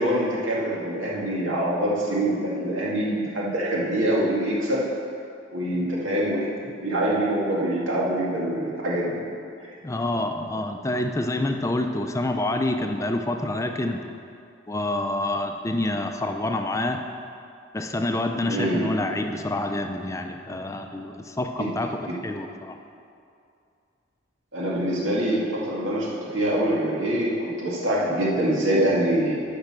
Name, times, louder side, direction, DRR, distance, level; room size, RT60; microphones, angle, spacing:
voice 1, 0.0-4.8 5.5-6.5 6.8-9.2 18.4-18.9 21.6-21.7 24.5-29.4, right 1 dB, 90° right, -4 dB, 2.0 m, -24 dB
voice 2, 9.8-14.0 14.7-17.0 17.7-21.9 22.2-22.8, left 1 dB, 15° left, 5 dB, 0.4 m, -27 dB
10.5 x 5.5 x 6.1 m, 2.5 s
head